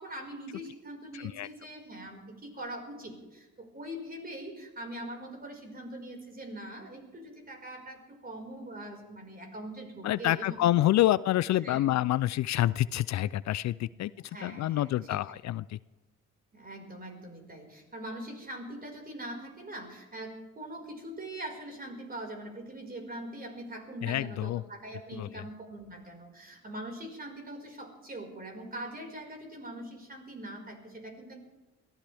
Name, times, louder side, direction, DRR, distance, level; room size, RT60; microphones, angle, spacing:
voice 1, 0.0-2.2 2.6-2.8 3.8-4.5 4.8-7.0 7.6-7.8 8.2-10.5 11.6-11.8 14.3-14.6 16.7-17.4 17.9-18.2 18.5-19.4 19.7-19.8 20.1-20.3 20.6-20.8 21.2-24.5 24.8-26.0 26.6-26.9 27.2-27.6 28.1-29.2 29.5-29.8 30.1-30.6 31.2-31.3, right 1 dB, 30° right, 2 dB, 5.3 m, -41 dB
voice 2, 1.1-1.5 10.0-14.1 14.4-15.8 24.0-24.6 25.2-25.3, left 14 dB, 65° left, 18 dB, 0.5 m, -27 dB
22.5 x 16.5 x 3.5 m, 1.2 s
cardioid pair, 90°, 30 cm